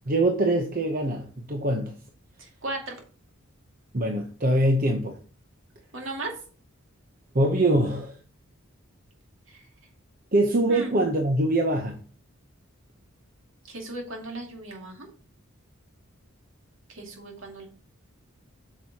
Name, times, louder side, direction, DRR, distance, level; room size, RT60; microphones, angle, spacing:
voice 1, 0.1-2.0 3.9-5.2 7.3-8.2 10.3-12.0, right 1 dB, 40° right, 0.8 m, -23 dB
voice 2, 2.4-3.0 5.9-6.3 9.5-9.7 10.7-10.9 13.6-15.1 16.9-17.7, right 2 dB, 65° right, 2.2 m, -36 dB
8.3 x 6.1 x 2.9 m
head